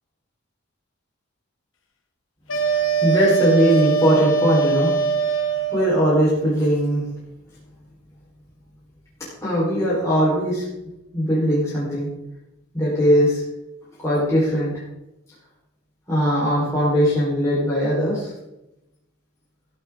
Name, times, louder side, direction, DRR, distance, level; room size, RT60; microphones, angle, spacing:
sound 1, 2.5-6.0, right 6 dB, 70° left, 1.8 m, -21 dB
voice 1, 3.0-4.9 5.7-7.0 9.4-10.6 11.1-12.1 12.7-13.4 14.0-14.7 16.1-18.3, equal, 15° left, -8 dB, 4.4 m, -20 dB
14.0 x 11.5 x 3.8 m, 0.92 s
head